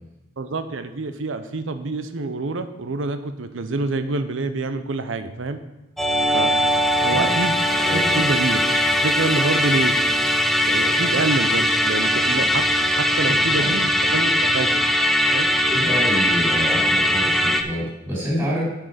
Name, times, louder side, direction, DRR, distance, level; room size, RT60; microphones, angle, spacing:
voice 1, 0.4-5.6 6.3-6.5 7.0-7.6 7.9-8.6 9.0-10.0 10.7-12.7 12.9-14.7 15.3-15.5, right 3 dB, 90° right, 10 dB, 0.7 m, -26 dB
Musical instrument, 6.0-17.6, equal, ahead, 0.5 m, -20 dB
voice 2, 7.8-8.2 13.6-13.7 15.7-18.6, equal, 20° right, -6 dB, 3.4 m, -27 dB
8.6 x 6.4 x 5.1 m, 0.98 s
head